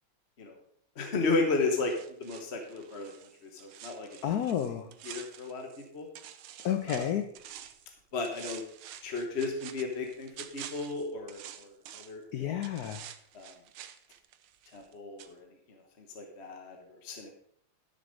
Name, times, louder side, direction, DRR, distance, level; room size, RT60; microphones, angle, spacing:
voice 1, 0.9-1.9 2.2-3.1 3.4-4.4 5.0-6.1 6.9-7.1 8.1-8.6 9.0-12.5 13.3-13.5 14.7-17.3, left 3 dB, 40° left, 3 dB, 1.2 m, -34 dB
sound 1, 1.8-5.9 6.1-7.9 8.2-12.2 12.6-14.9 15.2-15.3, right 10 dB, 85° right, 1.6 m, -48 dB
voice 2, 4.2-4.9 6.6-7.3 12.3-13.1, left 10 dB, 65° left, 8 dB, 0.9 m, -31 dB
12.0 x 6.9 x 5.2 m, 0.69 s
omnidirectional pair, 2.3 m